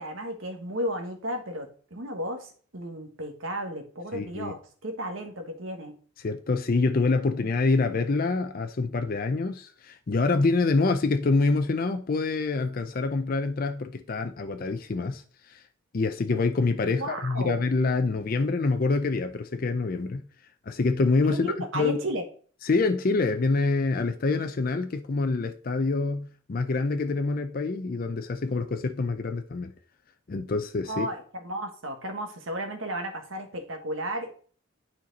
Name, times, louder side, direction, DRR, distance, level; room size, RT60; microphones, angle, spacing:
voice 1, 0.0-6.0 16.8-17.5 21.3-22.2 30.9-34.3, equal, 70° right, 1.3 m, -34 dB
voice 2, 4.1-4.5 6.2-15.2 15.5-15.6 15.9-20.2 20.7-22.0 22.6-29.7 30.3-31.1, left 3 dB, 45° left, 0.5 m, -26 dB
8.9 x 4.4 x 4.0 m
head